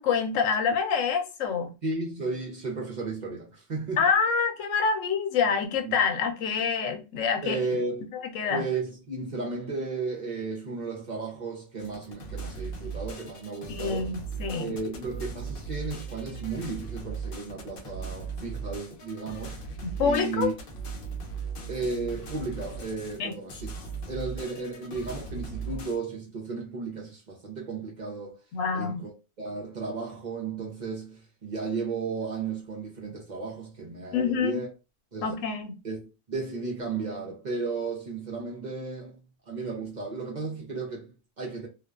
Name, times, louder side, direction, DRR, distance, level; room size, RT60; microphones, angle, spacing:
voice 1, 0.0-1.7 4.0-7.6 8.2-8.6 13.7-14.7 20.0-20.5 23.2-23.3 28.5-29.0 34.1-34.6 35.2-35.7, left 6 dB, 90° left, 1.0 m, -26 dB
voice 2, 1.8-4.1 5.8-6.0 7.4-8.1 8.5-14.1 14.6-19.6 20.0-20.5 21.7-23.7 24.1-28.4 28.7-29.1 29.4-34.7 35.1-35.3 35.8-39.2 39.5-41.7, right 4 dB, 45° right, 0.7 m, -34 dB
sound 1, 11.8-26.0, right 4 dB, 55° left, 0.7 m, -38 dB
2.4 x 2.1 x 2.3 m
omnidirectional pair, 1.3 m